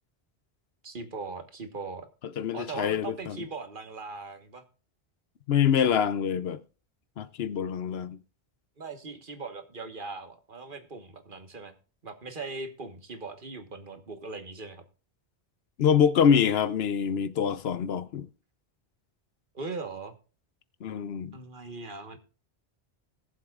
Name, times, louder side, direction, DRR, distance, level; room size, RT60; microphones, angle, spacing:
voice 1, 0.8-2.1 2.5-4.6 8.8-11.7 12.0-14.8 19.5-20.1 21.3-22.2, right 3 dB, 55° right, 1.5 m, -39 dB
voice 2, 2.4-3.4 5.5-6.6 7.2-8.2 15.8-18.3 20.8-21.4, left 8 dB, 70° left, 0.9 m, -25 dB
21.0 x 7.4 x 2.4 m
omnidirectional pair, 1.1 m